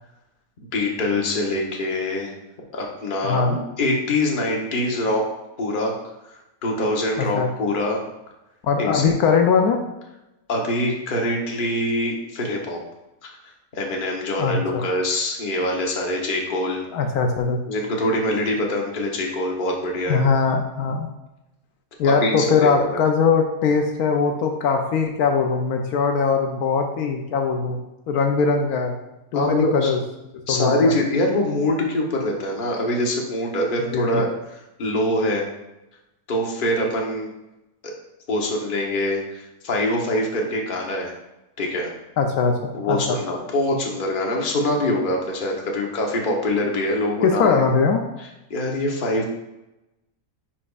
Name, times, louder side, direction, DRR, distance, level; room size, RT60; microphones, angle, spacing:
voice 1, 0.7-2.3 2.7-5.2 5.6-5.9 6.3-8.0 8.8-9.1 10.5-12.8 13.2-16.8 17.7-20.2 22.0-23.0 29.3-29.9 30.5-34.3 34.8-35.5 36.3-37.3 37.8-37.9 38.3-41.1 41.6-41.9 42.7-47.6 48.2-49.3, left 1 dB, 40° left, 0 dB, 1.0 m, -24 dB
voice 2, 3.2-3.6 7.2-7.5 8.6-9.8 14.4-14.8 16.9-17.6 20.1-21.1 22.0-27.8 28.1-29.0 29.3-30.0 30.5-31.0 33.9-34.2 42.2-43.2 47.2-48.0, left 5 dB, 75° left, 4 dB, 1.1 m, -21 dB
9.9 x 4.3 x 2.4 m, 0.95 s
omnidirectional pair, 1.7 m